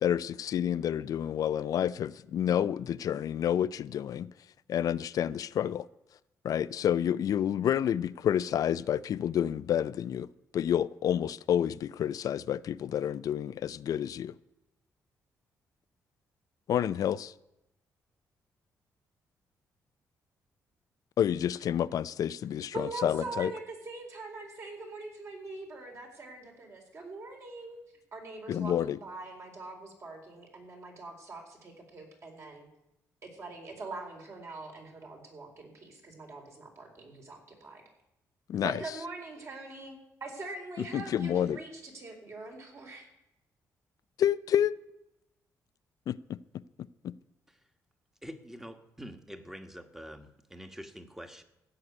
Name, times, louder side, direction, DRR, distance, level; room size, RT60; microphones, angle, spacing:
voice 1, 0.0-4.3 4.7-5.9 6.4-10.3 10.5-14.3 16.7-17.3 21.2-23.5 28.5-29.0 38.5-38.8 40.9-41.6 44.2-44.8 46.1-46.2 47.0-47.1, left 10 dB, 65° left, 0.5 m, -29 dB
voice 2, 22.7-27.9 28.1-32.7 33.3-37.8 38.5-43.1, right 3 dB, 50° right, 4.5 m, -43 dB
voice 3, 48.2-51.4, equal, 5° right, 1.5 m, -45 dB
15.5 x 6.7 x 9.7 m
cardioid pair, 90°, 6 cm